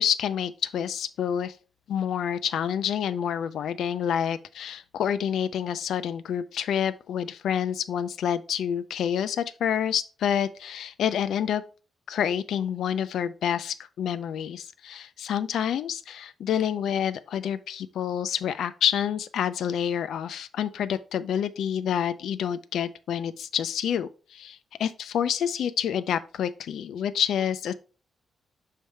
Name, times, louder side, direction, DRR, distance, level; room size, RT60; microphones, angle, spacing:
voice 1, 0.0-1.6 1.9-11.6 12.1-27.7, left 9 dB, 90° left, 0.5 m, -28 dB
6.4 x 3.4 x 4.4 m
wide cardioid pair, 130°, 0 cm